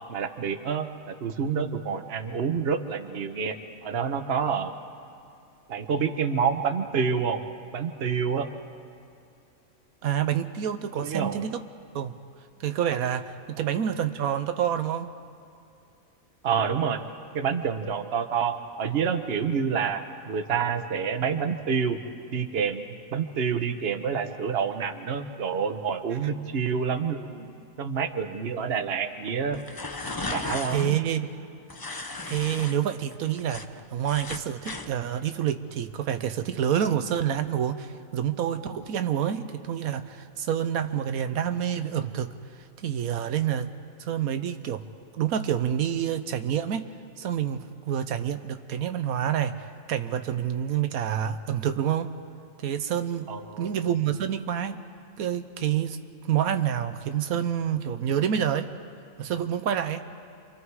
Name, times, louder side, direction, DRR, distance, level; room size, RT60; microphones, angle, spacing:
voice 1, 0.1-3.6 3.8-4.7 5.7-7.4 7.7-8.5 10.9-11.4 16.4-17.0 17.3-22.0 22.3-29.6 30.3-31.0 53.3-53.9, right 6 dB, 50° right, 7 dB, 1.2 m, -28 dB
voice 2, 10.0-11.6 11.9-12.1 12.6-15.1 30.7-31.3 32.3-42.3 42.8-43.7 44.1-44.8 45.1-46.9 47.2-49.6 49.9-52.1 52.6-54.9 55.2-56.0 56.2-58.7 59.2-60.0, right 9 dB, 90° right, 9 dB, 1.3 m, -28 dB
sound 1, 29.5-30.9 31.7-32.7 33.1-34.9, left 3 dB, 25° left, 0.5 m, -35 dB
28.5 x 24.5 x 4.8 m, 2.4 s
omnidirectional pair, 1.5 m